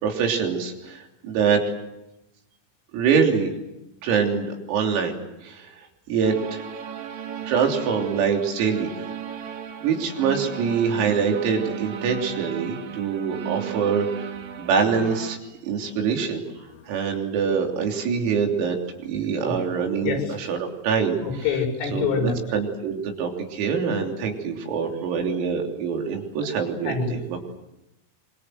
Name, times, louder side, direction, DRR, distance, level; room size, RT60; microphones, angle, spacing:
voice 1, 0.0-1.6 2.9-3.5 4.0-5.7 6.1-6.6 7.5-8.9 9.8-14.3 14.6-15.4 15.6-16.4 16.9-21.2 21.9-27.4, right 6 dB, 90° right, 2 dB, 6.1 m, -24 dB
sound 1, 6.2-15.4, right 9 dB, 65° right, 1.9 m, -35 dB
voice 2, 15.5-15.9 16.6-17.0 19.5-19.6 20.0-20.3 21.2-22.4 26.9-27.1, left 5 dB, 75° left, 1 dB, 7.6 m, -27 dB
26.0 x 24.5 x 7.9 m, 0.91 s
omnidirectional pair, 6.0 m